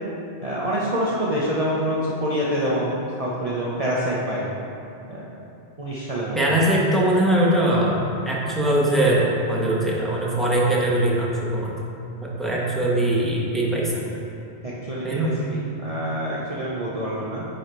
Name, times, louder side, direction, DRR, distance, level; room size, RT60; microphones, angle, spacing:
voice 1, 0.4-4.5 5.1-5.2 5.8-6.5 14.6-17.4, equal, 35° right, -6 dB, 0.9 m, -26 dB
voice 2, 6.3-8.0 8.2-11.7 12.2-14.1 15.0-15.3, right 1 dB, ahead, -6 dB, 1.3 m, -21 dB
10.0 x 4.3 x 4.6 m, 2.8 s
omnidirectional pair, 1.2 m